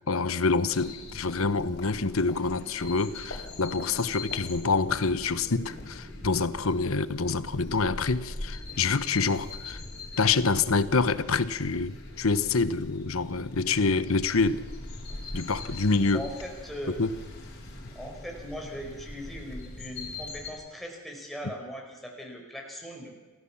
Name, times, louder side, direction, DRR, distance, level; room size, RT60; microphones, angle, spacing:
voice 1, 0.1-9.8 10.2-14.6 15.3-16.3 17.0-17.1, left 4 dB, 75° left, 1.1 m, -26 dB
sound 1, 0.7-20.5, left 2 dB, 50° left, 4.9 m, -42 dB
voice 2, 16.1-17.0 17.9-23.1, equal, ahead, 5.1 m, -39 dB
27.5 x 16.0 x 7.3 m
head